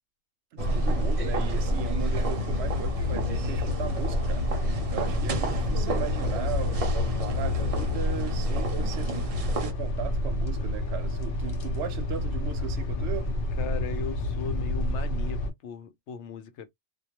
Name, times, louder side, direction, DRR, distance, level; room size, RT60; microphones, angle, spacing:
voice 1, 0.5-4.5 4.9-6.8 7.2-9.1 9.6-13.3, right 9 dB, 70° right, 0.8 m, -37 dB
sound 1, 0.6-15.5, left 1 dB, 60° left, 0.7 m, -28 dB
sound 2, 0.6-9.7, right 3 dB, 50° right, 0.4 m, -35 dB
voice 2, 13.6-16.7, left 5 dB, 85° left, 0.9 m, -38 dB
2.3 x 2.2 x 2.8 m
omnidirectional pair, 1.2 m